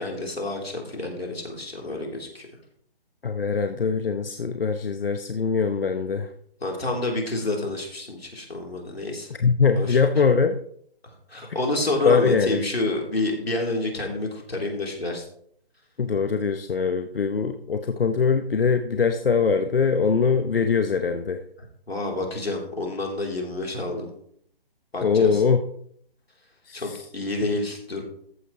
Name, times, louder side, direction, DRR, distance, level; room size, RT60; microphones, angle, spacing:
voice 1, 0.0-2.5 6.6-9.3 9.8-10.0 11.3-15.2 21.9-24.1 24.9-25.4 26.7-28.0, left 2 dB, 90° left, 0 dB, 3.7 m, -28 dB
voice 2, 3.2-6.3 9.4-10.6 11.5-11.6 12.0-12.6 16.0-21.4 25.0-25.7 26.7-27.0, left 5 dB, 70° left, 8 dB, 1.0 m, -22 dB
14.0 x 9.8 x 3.2 m, 0.67 s
figure-of-eight pair, 150°, 30 cm